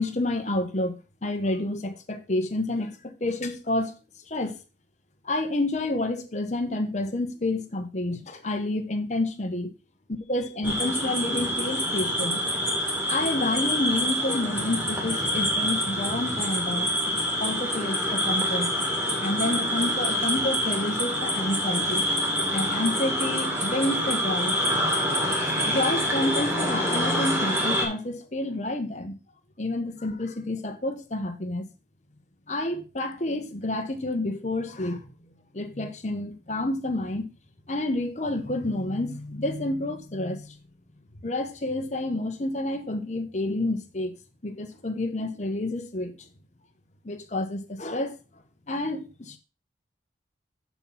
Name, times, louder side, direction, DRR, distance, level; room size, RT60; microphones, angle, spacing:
voice 1, 0.0-4.0 4.3-4.6 5.2-9.7 10.3-12.4 13.1-16.9 17.4-18.7 19.1-24.5 25.6-29.2 29.6-31.7 32.5-35.0 35.5-37.3 37.7-40.6 41.2-44.1 44.4-46.1 47.0-48.2 48.7-49.4, left 2 dB, 40° left, 1.0 m, -29 dB
sound 1, 10.6-27.9, equal, 15° right, 2.2 m, -26 dB
7.1 x 4.6 x 5.5 m
head